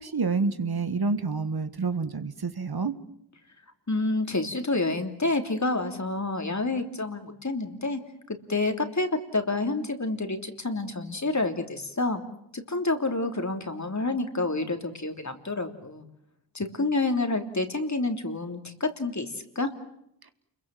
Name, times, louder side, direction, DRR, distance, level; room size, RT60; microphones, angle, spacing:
voice 1, 0.0-2.9, right 4 dB, 60° right, 11 dB, 1.6 m, -28 dB
voice 2, 3.9-8.0 8.3-12.2 12.5-16.1 16.5-19.7, left 2 dB, 40° left, 6 dB, 3.1 m, -28 dB
29.5 x 22.5 x 7.7 m, 0.74 s
wide cardioid pair, 55°, 43 cm